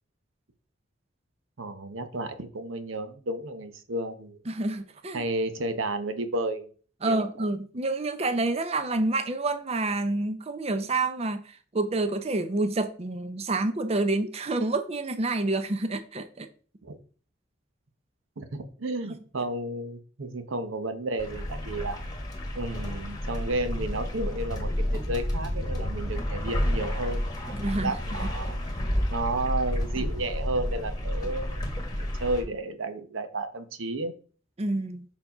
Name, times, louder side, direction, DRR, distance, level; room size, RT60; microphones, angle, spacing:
voice 1, 1.6-4.4 5.1-6.7 7.0-7.3 16.8-17.0 18.4-22.0 22.5-28.6 29.1-31.6 31.9-34.1, right 2 dB, 85° right, 0.8 m, -32 dB
voice 2, 4.5-5.2 7.0-16.5 19.0-19.4 27.5-27.9 28.2-28.3 34.6-35.0, right 2 dB, 30° right, 0.5 m, -28 dB
sound 1, 21.2-32.4, equal, 20° left, 1.4 m, -30 dB
5.4 x 4.7 x 4.9 m
head